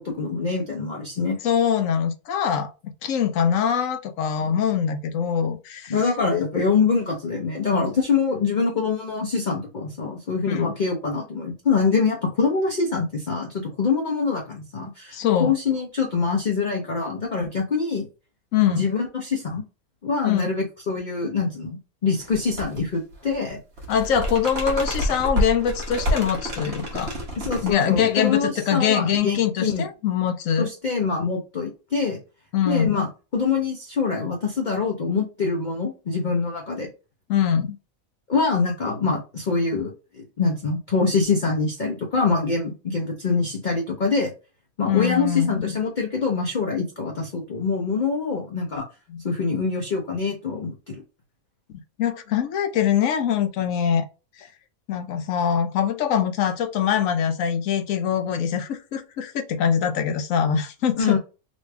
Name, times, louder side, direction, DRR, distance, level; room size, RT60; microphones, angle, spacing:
voice 1, 0.0-1.4 5.9-18.1 18.7-19.6 20.0-23.6 27.4-29.9 30.6-32.2 32.7-36.9 38.3-44.3 44.8-48.9 49.2-51.0 61.0-61.2, left 4 dB, 45° left, 0.7 m, -24 dB
voice 2, 1.4-2.7 3.0-5.9 10.5-10.7 15.1-15.5 18.5-18.8 20.2-20.5 23.9-27.1 27.6-30.7 32.5-33.1 37.3-37.8 44.9-45.7 49.1-49.2 52.0-54.0 54.4-54.5 54.9-61.2, left 8 dB, 70° left, 1.0 m, -23 dB
sound 1, 22.2-22.8 23.1-28.3, equal, 50° right, 1.1 m, -28 dB
3.1 x 2.7 x 3.2 m
omnidirectional pair, 1.5 m